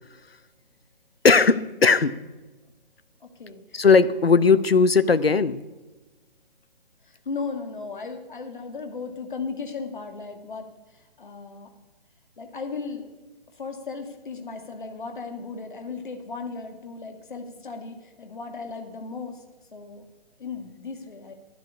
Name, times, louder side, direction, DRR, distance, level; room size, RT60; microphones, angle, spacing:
voice 1, 1.2-2.2 3.7-5.7, left 4 dB, 80° left, 15 dB, 0.8 m, -18 dB
voice 2, 3.2-3.8 7.0-10.7 10.9-11.7 12.4-13.2 13.5-19.4 19.7-20.0 20.4-21.3, left 4 dB, 55° left, 5 dB, 2.3 m, -36 dB
11.5 x 11.0 x 8.5 m, 1.2 s
figure-of-eight pair, 140°, 29 cm